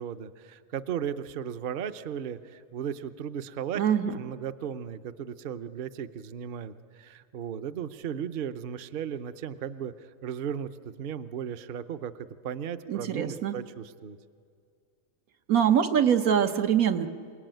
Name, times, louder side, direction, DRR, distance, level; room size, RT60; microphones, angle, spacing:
voice 1, 0.0-3.8 4.2-9.9 10.2-10.7 11.0-14.2, right 8 dB, 50° right, 11 dB, 0.7 m, -36 dB
voice 2, 3.7-4.2 12.9-13.6 15.5-17.1, right 8 dB, 85° right, 7 dB, 1.5 m, -24 dB
27.5 x 19.0 x 9.1 m, 2.2 s
omnidirectional pair, 1.5 m